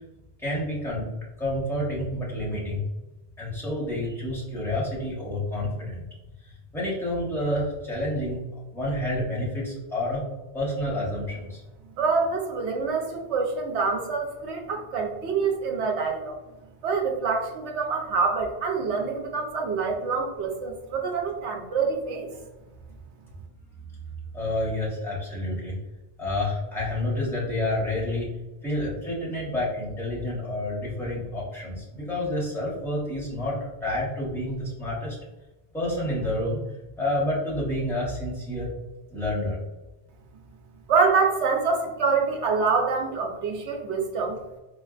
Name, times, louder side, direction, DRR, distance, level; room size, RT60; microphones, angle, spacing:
voice 1, 0.4-1.1 1.4-2.8 3.4-6.0 6.4-8.4 8.7-10.2 10.5-11.6 24.3-25.8 26.2-28.3 28.6-35.2 35.7-36.6 37.0-38.7 39.1-39.6, left 1 dB, ahead, -6 dB, 1.2 m, -29 dB
voice 2, 12.0-16.4 16.8-22.3 40.9-44.3, right 4 dB, 75° right, 1 dB, 1.0 m, -26 dB
4.3 x 2.5 x 2.4 m, 1.1 s
omnidirectional pair, 1.2 m